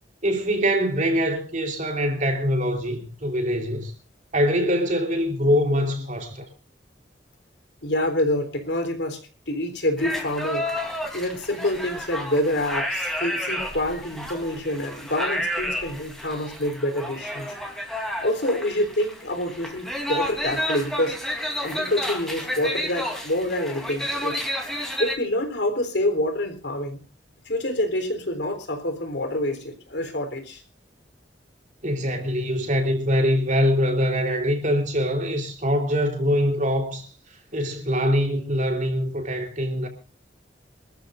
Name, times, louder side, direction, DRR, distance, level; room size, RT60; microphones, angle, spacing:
voice 1, 0.2-3.9 4.3-6.5 31.8-37.1 37.5-39.9, equal, 45° right, 3.7 m, -23 dB
voice 2, 7.8-10.7 11.1-17.5 18.2-21.2 21.6-24.4 25.0-27.0 27.5-30.6, left 1 dB, 70° left, 3.8 m, -27 dB
sound 1, 10.0-25.1, equal, ahead, 3.3 m, -31 dB
26.5 x 14.0 x 2.6 m
head